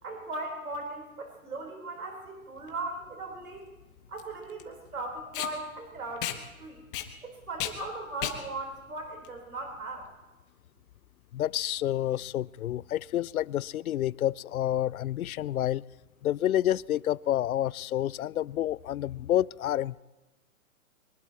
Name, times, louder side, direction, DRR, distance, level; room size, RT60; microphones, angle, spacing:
voice 1, 0.0-3.7 4.1-6.8 7.2-10.1, right 2 dB, 90° right, 2 dB, 4.2 m, -38 dB
Packing tape duct tape, 2.6-10.1, left 11 dB, 35° left, 1.6 m, -38 dB
voice 2, 11.3-15.8 16.2-20.0, left 12 dB, 80° left, 24 dB, 0.5 m, -29 dB
23.5 x 20.0 x 3.0 m, 1.2 s
hypercardioid pair, 140°, 43 cm